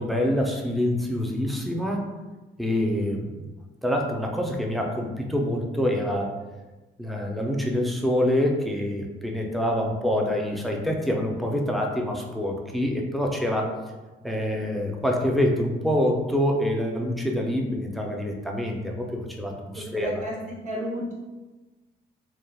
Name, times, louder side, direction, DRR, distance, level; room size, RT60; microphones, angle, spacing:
voice 1, 0.0-2.1 2.6-3.3 3.8-6.3 7.0-13.7 14.2-20.2, left 1 dB, ahead, 0 dB, 0.4 m, -26 dB
voice 2, 19.7-21.1, equal, 35° right, -4 dB, 1.0 m, -33 dB
3.2 x 2.2 x 2.3 m, 1.2 s
cardioid pair, 90°, 20 cm